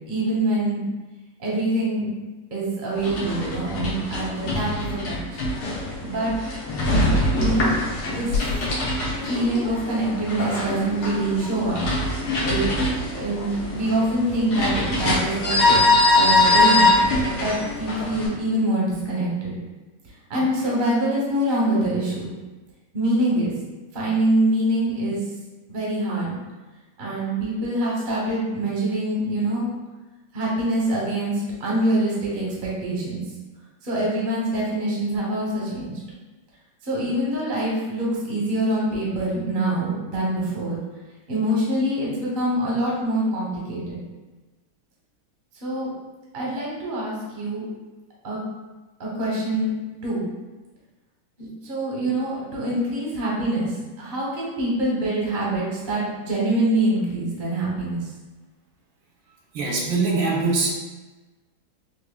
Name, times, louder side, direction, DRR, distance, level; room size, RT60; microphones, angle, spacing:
voice 1, 0.1-0.8 1.4-2.1 2.5-5.4 6.0-6.3 7.4-7.8 8.0-8.3 9.3-11.8 12.4-12.7 13.2-15.7 16.1-16.9 17.4-19.5 20.3-22.3 22.9-23.5 23.9-25.2 25.7-26.4 27.0-29.6 30.3-33.2 33.8-35.9 36.8-40.8 41.3-44.0 45.6-45.9 46.3-47.6 48.2-48.4 49.0-49.7 50.0-50.2 51.4-53.7 54.0-58.1, right 1 dB, 40° right, -5 dB, 0.8 m, -25 dB
sound 1, 2.9-18.3, left 2 dB, 65° left, 1.2 m, -23 dB
voice 2, 59.5-60.7, right 3 dB, 80° right, -2 dB, 1.5 m, -22 dB
4.3 x 2.7 x 2.3 m, 1.2 s
omnidirectional pair, 2.2 m